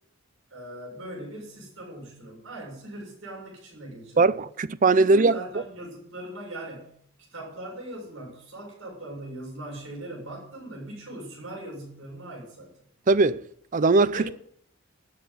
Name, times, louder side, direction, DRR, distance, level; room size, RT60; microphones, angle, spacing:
voice 1, 0.5-4.4 5.0-7.0 7.3-12.7 14.1-14.3, right 1 dB, 65° right, 6.9 m, -40 dB
voice 2, 4.2-5.4 13.1-13.4 13.7-14.3, right 3 dB, 40° right, 0.5 m, -20 dB
13.0 x 8.0 x 9.5 m
head